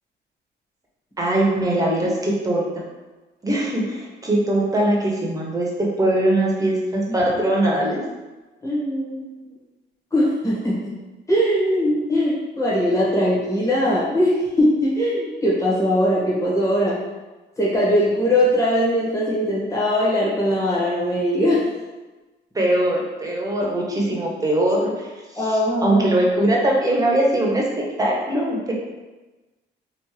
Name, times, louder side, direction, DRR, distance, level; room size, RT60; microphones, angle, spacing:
voice 1, 1.2-2.8 3.4-8.0 22.5-25.1 25.4-27.6 28.0-28.7, right 1 dB, 15° right, -2 dB, 0.9 m, -21 dB
voice 2, 8.6-9.3 10.1-10.9 11.3-17.0 17.6-21.6 25.4-26.0, equal, 15° left, -8 dB, 1.4 m, -20 dB
3.4 x 2.5 x 3.1 m, 1.2 s
cardioid pair, 90°, 20 cm